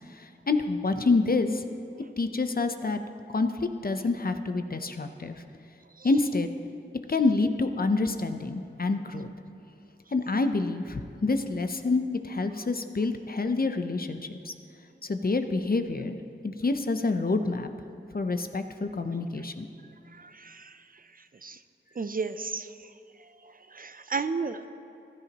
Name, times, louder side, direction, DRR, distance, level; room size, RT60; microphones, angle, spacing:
voice 1, 0.1-1.6 2.2-3.0 3.3-5.4 6.0-6.5 7.1-9.3 10.1-14.2 14.4-14.5 15.0-16.2 16.4-17.7 18.1-19.7, left 3 dB, 50° left, 8 dB, 0.7 m, -27 dB
voice 2, 20.1-20.8 21.4-21.6 22.0-22.7 23.7-24.7, right 4 dB, 45° right, 11 dB, 0.5 m, -33 dB
15.0 x 11.0 x 2.9 m, 2.8 s
wide cardioid pair, 40°, 20 cm